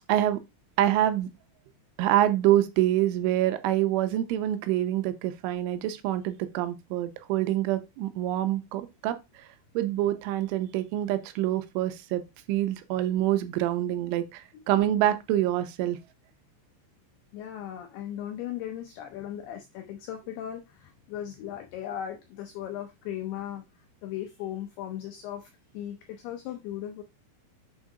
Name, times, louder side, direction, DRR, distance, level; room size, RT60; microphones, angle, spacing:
voice 1, 0.1-0.4 0.8-1.3 2.0-9.5 9.8-12.2 12.5-16.0, right 13 dB, 90° right, 3.1 m, -26 dB
voice 2, 17.3-27.0, left 11 dB, 90° left, 2.2 m, -37 dB
7.4 x 3.6 x 4.8 m
omnidirectional pair, 5.5 m